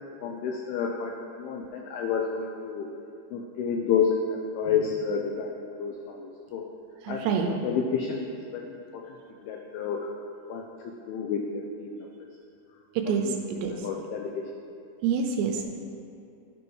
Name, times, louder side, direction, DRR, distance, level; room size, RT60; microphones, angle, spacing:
voice 1, 0.2-1.1 1.4-2.9 3.3-6.6 7.1-7.2 7.5-10.1 10.5-12.1 13.1-13.3 13.7-14.4, left 6 dB, 90° left, 1 dB, 2.2 m, -30 dB
voice 2, 7.0-7.5 13.0-13.7 15.0-15.6, right 6 dB, 85° right, 3 dB, 2.6 m, -27 dB
12.0 x 6.2 x 3.1 m, 2.5 s
omnidirectional pair, 5.1 m